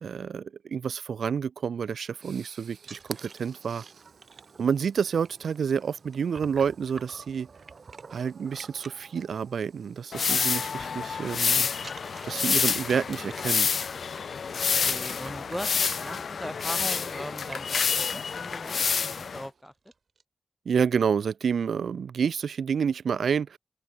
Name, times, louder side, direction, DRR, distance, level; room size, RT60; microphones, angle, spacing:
voice 1, 0.0-3.8 4.6-7.5 8.1-11.7 12.2-13.7 20.7-23.6, right 7 dB, 80° right, 0.3 m, -29 dB
sound 1, 1.6-19.6, right 6 dB, 65° right, 5.5 m, -55 dB
sound 2, 2.8-9.9 10.2-10.5 10.7-11.3 11.8-18.1 18.8-18.9 19.2-19.4 19.6-20.2, right 4 dB, 45° right, 4.8 m, -50 dB
sound 3, 10.1-19.5, left 6 dB, 65° left, 0.5 m, -28 dB
voice 2, 14.8-17.8 18.1-19.7, equal, ahead, 0.6 m, -39 dB
wide cardioid pair, 150°, 0 cm